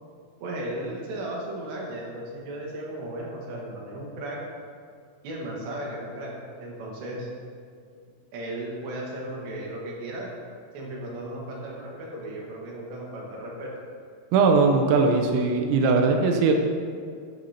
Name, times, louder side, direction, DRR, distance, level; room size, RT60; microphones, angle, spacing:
voice 1, 0.4-4.4 5.2-6.3 6.6-7.3 8.3-10.3 10.7-13.7, right 1 dB, 65° right, -3 dB, 3.4 m, -35 dB
voice 2, 14.3-16.5, right 4 dB, 85° right, 3 dB, 2.9 m, -20 dB
12.5 x 11.0 x 2.8 m, 2.2 s
omnidirectional pair, 5.9 m